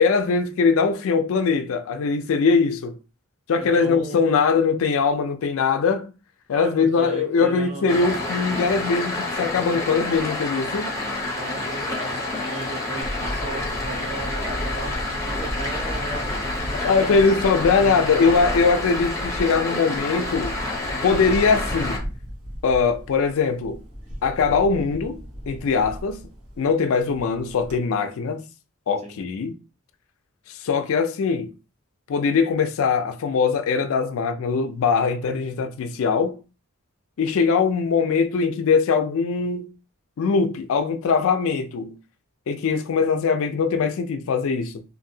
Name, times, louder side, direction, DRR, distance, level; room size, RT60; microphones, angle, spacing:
voice 1, 0.0-3.0 3.5-6.1 6.5-11.2 16.8-20.6 21.0-22.0 22.6-23.8 24.2-26.3 26.6-28.4 28.9-29.5 30.5-31.5 32.1-36.4 37.2-39.7 40.2-42.0 42.5-44.8, left 5 dB, 65° left, 0.4 m, -21 dB
voice 2, 3.5-4.2 6.5-8.2 11.1-17.2 17.7-18.5 29.0-29.2, right 3 dB, 30° right, 0.7 m, -37 dB
sound 1, 7.9-22.0, left 2 dB, 15° left, 0.7 m, -29 dB
Camera, 13.0-27.8, equal, 80° right, 1.0 m, -35 dB
2.7 x 2.6 x 2.6 m
head